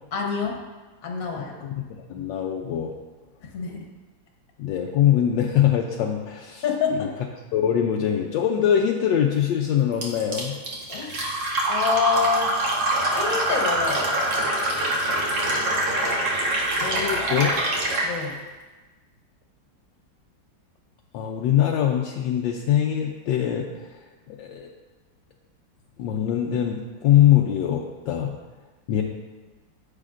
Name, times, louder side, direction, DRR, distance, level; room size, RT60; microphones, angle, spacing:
voice 1, 0.1-0.6 1.0-1.6 3.5-3.8 6.6-7.1 10.9-11.4 11.7-12.5 13.1-14.1 18.0-18.4, left 6 dB, 50° left, 1 dB, 1.4 m, -26 dB
voice 2, 1.3-1.8 2.1-2.9 4.6-6.6 6.9-7.1 7.5-10.5 16.8-17.6 21.1-23.7 24.3-24.7 26.0-28.3 28.9-29.0, left 10 dB, 75° left, 1 dB, 1.2 m, -22 dB
Fill (with liquid), 10.0-18.1, right 1 dB, 65° right, 1.9 m, -24 dB
9.8 x 7.6 x 2.5 m, 1.2 s
omnidirectional pair, 2.1 m